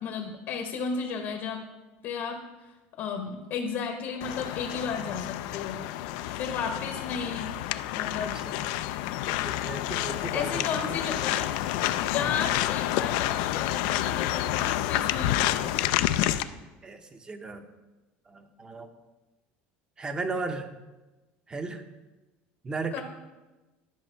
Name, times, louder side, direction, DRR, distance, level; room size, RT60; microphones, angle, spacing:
voice 1, 0.0-1.6 2.0-2.4 3.0-5.8 6.4-7.5 7.9-8.4 10.3-11.5 12.0-15.7 22.9-23.0, left 6 dB, 55° left, 4 dB, 0.9 m, -33 dB
sound 1, 4.2-16.4, left 14 dB, 80° left, 0.4 m, -29 dB
voice 2, 9.4-11.0 12.1-12.4 16.8-17.7 18.3-18.9 20.0-20.7 21.5-21.8 22.6-23.0, right 3 dB, 20° right, 8 dB, 0.7 m, -36 dB
10.5 x 5.3 x 4.5 m, 1.1 s
cardioid pair, 135°, 4 cm